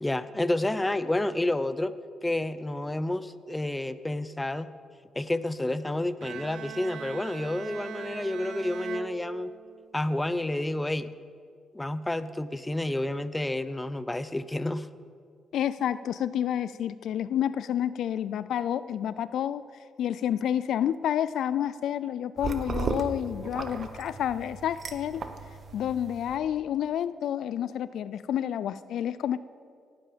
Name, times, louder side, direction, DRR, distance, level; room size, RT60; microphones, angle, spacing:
voice 1, 0.0-1.9 2.2-4.7 5.2-9.5 9.9-11.1 11.7-14.9, left 1 dB, 10° left, 14 dB, 0.6 m, -30 dB
Bowed string instrument, 6.2-9.9, right 8 dB, 75° right, 0.8 m, -41 dB
voice 2, 15.5-19.6 20.0-25.2 25.7-29.4, left 10 dB, 75° left, 16 dB, 0.3 m, -29 dB
sound 1, 22.4-26.4, right 4 dB, 45° right, 1.0 m, -36 dB
18.0 x 9.1 x 5.1 m, 2.2 s
cardioid pair, 90°, 0 cm